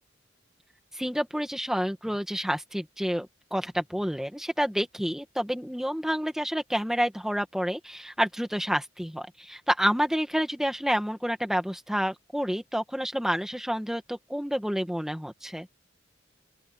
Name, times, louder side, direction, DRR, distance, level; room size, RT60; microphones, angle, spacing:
voice 1, 0.9-15.7, equal, ahead, 1.9 m, -29 dB
open air
head